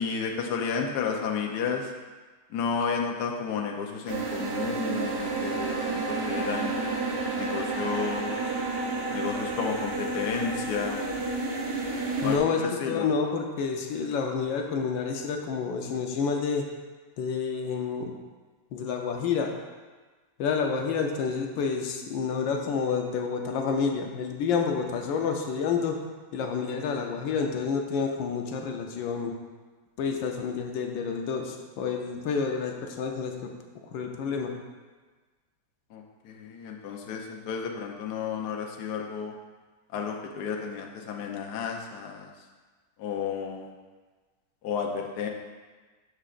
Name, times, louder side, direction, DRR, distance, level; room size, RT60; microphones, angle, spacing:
voice 1, 0.0-1.9 2.5-6.7 7.3-8.5 9.1-11.1 12.2-13.1 35.9-39.3 39.9-42.3 43.0-43.7 44.6-45.3, left 6 dB, 65° left, 1 dB, 1.2 m, -32 dB
sound 1, 4.1-12.4, right 3 dB, 50° right, 0.7 m, -30 dB
voice 2, 12.2-12.6 12.9-16.7 17.2-18.1 18.7-19.5 20.4-26.0 26.3-29.3 30.0-33.5 33.9-34.6, left 5 dB, 85° left, 3 dB, 1.5 m, -29 dB
12.5 x 5.0 x 2.5 m, 1.3 s
omnidirectional pair, 2.0 m